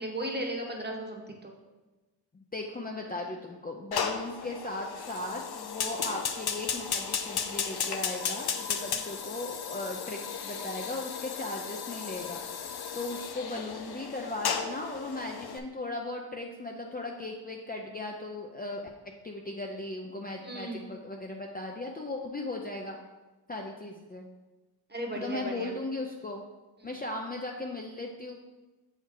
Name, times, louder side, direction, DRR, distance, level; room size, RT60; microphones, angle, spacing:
voice 1, 0.0-1.5 8.9-9.0 13.3-13.5 20.4-20.8 24.9-25.8, right 1 dB, 25° right, 1 dB, 1.2 m, -36 dB
voice 2, 2.5-12.4 12.9-18.9 19.2-23.0 23.5-24.3 25.2-26.4 26.8-28.3, left 2 dB, 20° left, 0 dB, 0.5 m, -37 dB
Fire, 3.9-15.6, left 7 dB, 60° left, 0.6 m, -35 dB
7.0 x 4.5 x 3.8 m, 1.2 s
cardioid pair, 85°, 43 cm